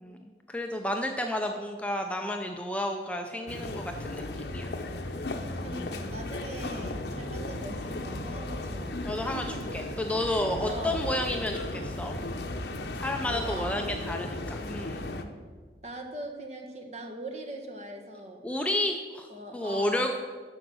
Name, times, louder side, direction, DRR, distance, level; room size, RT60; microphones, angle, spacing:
voice 1, 0.5-4.2 4.5-4.7 9.1-12.2 13.0-15.1 18.4-20.2, left 1 dB, 5° left, 4 dB, 0.5 m, -31 dB
sound 1, 3.5-15.2, left 2 dB, 75° left, 0.8 m, -35 dB
voice 2, 5.6-9.6 10.3-11.0 13.4-13.8 15.8-18.4 19.3-20.1, right 1 dB, 40° right, 2 dB, 1.3 m, -41 dB
12.5 x 5.2 x 6.1 m, 1.5 s
head